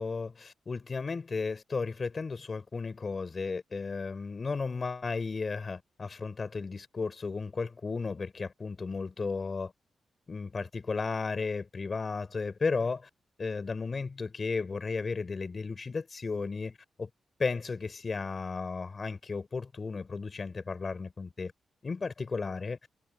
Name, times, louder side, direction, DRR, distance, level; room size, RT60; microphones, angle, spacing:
voice 1, 0.0-9.7 10.3-13.1 13.4-17.1 17.4-21.5 21.8-22.8, left 4 dB, 30° left, 5.3 m, -34 dB
wide cardioid pair, 150°, 0 cm